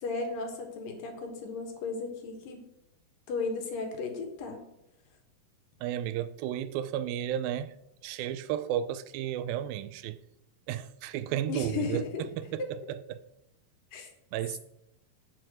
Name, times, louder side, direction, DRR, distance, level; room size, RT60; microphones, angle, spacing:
voice 1, 0.0-2.6 3.3-4.6 11.5-12.2 12.6-12.7 13.9-14.1, left 4 dB, 70° left, 3.1 m, -35 dB
voice 2, 5.8-7.8 8.0-10.2 10.7-12.0 12.5-13.2 14.3-14.6, right 11 dB, 80° right, 2.3 m, -33 dB
9.9 x 5.9 x 6.2 m
omnidirectional pair, 4.3 m